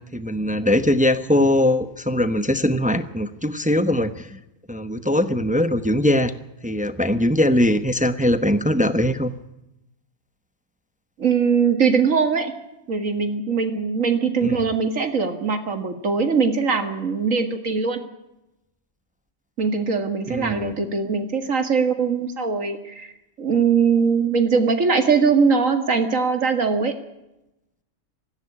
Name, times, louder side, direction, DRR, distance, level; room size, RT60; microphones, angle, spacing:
voice 1, 0.1-4.4 4.7-6.3 6.6-9.3 14.4-14.6 20.3-20.8, left 1 dB, 5° right, 11 dB, 0.9 m, -21 dB
voice 2, 11.2-12.5 12.9-18.0 19.6-23.1 23.4-26.9, right 5 dB, 80° right, 7 dB, 2.4 m, -21 dB
17.5 x 15.5 x 9.9 m, 0.91 s
omnidirectional pair, 1.3 m